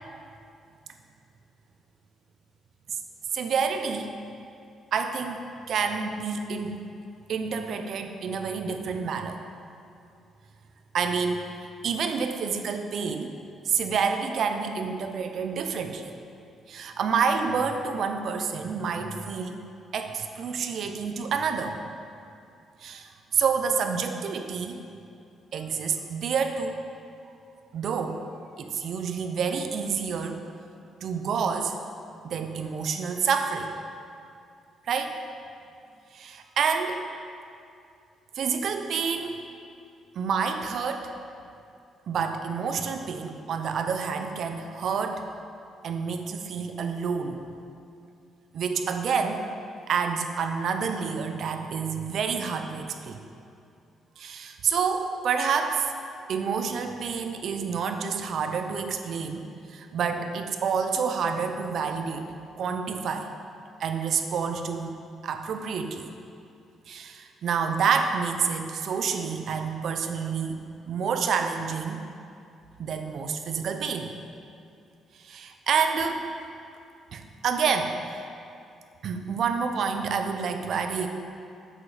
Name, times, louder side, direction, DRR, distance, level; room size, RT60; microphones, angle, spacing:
voice 1, 3.3-4.1 4.9-6.8 7.3-9.4 10.9-11.5 11.8-13.3 13.6-16.1 16.7-19.6 19.9-21.8 22.8-24.8 25.5-26.8 27.7-28.2 28.6-30.4 31.0-31.8 32.2-33.7 34.9-35.2 36.1-37.0 38.3-39.4 40.1-41.1 42.1-45.2 45.8-47.4 48.5-49.5 49.9-53.2 54.2-55.9 56.3-63.3 63.8-65.0 65.2-66.1 66.9-72.0 72.8-74.1 75.2-76.2 77.1-78.3 79.0-81.1, right 6 dB, 65° right, 7 dB, 0.7 m, -28 dB
8.4 x 7.3 x 5.0 m, 2.5 s
cardioid pair, 90°, 0 cm